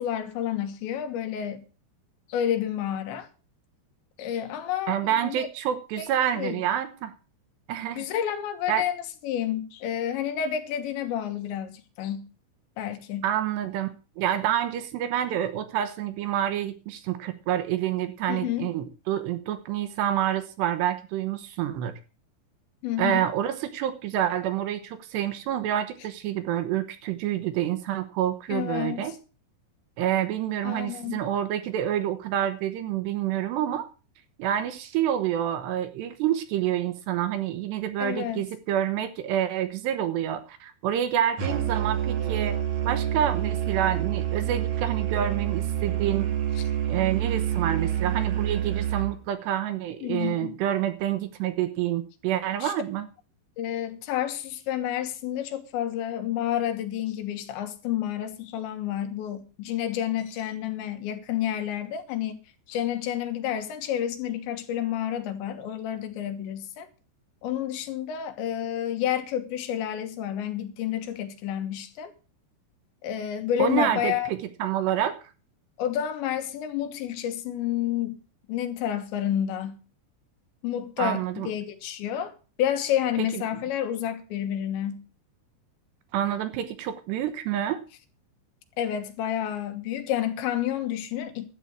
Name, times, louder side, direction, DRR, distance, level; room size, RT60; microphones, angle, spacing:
voice 1, 0.0-1.6 2.3-3.3 4.2-5.5 6.0-6.1 6.4-6.6 8.0-12.3 12.8-13.3 18.3-18.7 22.8-23.2 28.5-29.2 30.6-31.2 38.0-38.4 50.0-50.5 52.6-52.7 53.6-62.4 62.7-66.9 67.4-72.1 73.0-74.3 75.8-78.2 78.5-79.8 80.6-85.0 88.8-91.5, left 10 dB, 75° left, 3.4 m, -30 dB
voice 2, 4.9-7.1 7.7-8.0 8.7-8.8 13.2-13.9 14.2-21.9 23.0-29.1 30.0-33.9 34.4-42.6 42.8-46.3 46.9-53.1 73.6-75.2 81.0-81.5 83.2-83.4 86.1-87.8, right 11 dB, 75° right, 2.9 m, -28 dB
Musical instrument, 41.4-49.2, right 11 dB, 55° right, 1.7 m, -27 dB
12.5 x 8.9 x 6.3 m
omnidirectional pair, 5.4 m